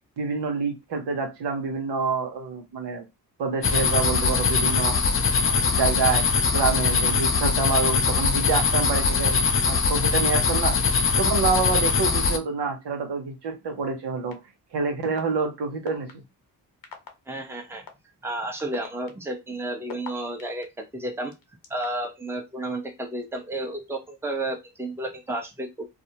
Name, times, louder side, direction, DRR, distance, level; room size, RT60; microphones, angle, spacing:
voice 1, 0.2-3.0 3.4-5.0 5.4-6.3 6.5-9.4 9.7-10.8 11.2-14.4 14.7-16.1, right 4 dB, 75° right, 0.8 m, -27 dB
sound 1, 3.6-12.4, left 5 dB, 30° left, 0.4 m, -22 dB
sound 2, 14.3-14.4 15.2-15.3 15.9-16.1 16.8-17.1 17.9-18.0 18.6-20.6 21.3-22.1, left 7 dB, 55° left, 0.8 m, -40 dB
voice 2, 17.3-17.8 18.2-21.3 21.7-25.9, right 1 dB, 5° right, 0.7 m, -32 dB
2.4 x 2.0 x 2.8 m
cardioid pair, 55°, 42 cm